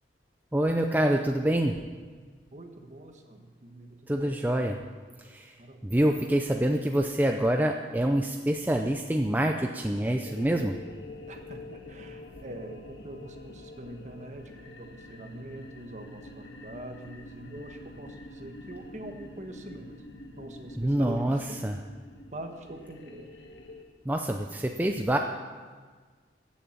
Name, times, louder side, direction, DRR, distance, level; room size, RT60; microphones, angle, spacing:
voice 1, 0.5-1.8 4.1-4.8 5.2-5.5 5.8-10.7 20.7-21.8 24.1-25.2, right 1 dB, 10° right, 3 dB, 0.5 m, -26 dB
voice 2, 2.5-4.3 5.6-5.8 11.3-19.9 20.4-21.6 22.3-23.3, right 1 dB, 40° right, 4 dB, 1.3 m, -44 dB
sound 1, 10.2-23.8, left 2 dB, 85° left, 1.6 m, -47 dB
15.5 x 7.2 x 7.4 m, 1.5 s
head